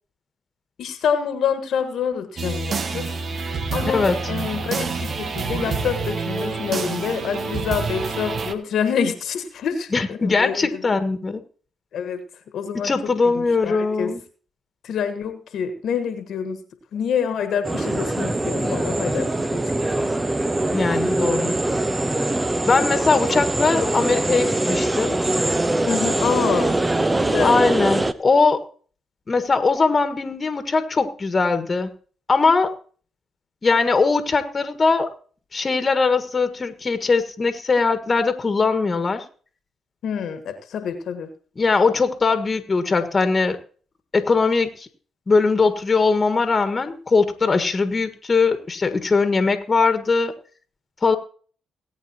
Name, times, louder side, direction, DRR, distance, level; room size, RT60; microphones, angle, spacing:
voice 1, 0.8-3.2 3.7-11.0 11.9-12.2 12.5-14.1 14.8-16.6 16.9-19.6 20.0-20.1 25.9-26.7 27.1-27.5 40.0-41.3, left 7 dB, 70° left, 8 dB, 1.5 m, -27 dB
sound 1, 2.4-8.5, right 4 dB, 55° right, 1.3 m, -27 dB
voice 2, 3.8-4.2 9.9-11.4 12.8-14.2 20.7-21.5 22.7-25.2 27.4-28.6 29.3-31.9 32.3-32.7 33.6-35.1 35.5-39.2 41.6-43.6 44.1-44.9 45.3-50.3 51.0-51.2, left 4 dB, 35° left, 9 dB, 1.6 m, -20 dB
sound 2, 17.6-28.1, right 2 dB, 20° right, 0.9 m, -22 dB
18.5 x 8.7 x 3.0 m, 0.42 s
hypercardioid pair, 50°, 0 cm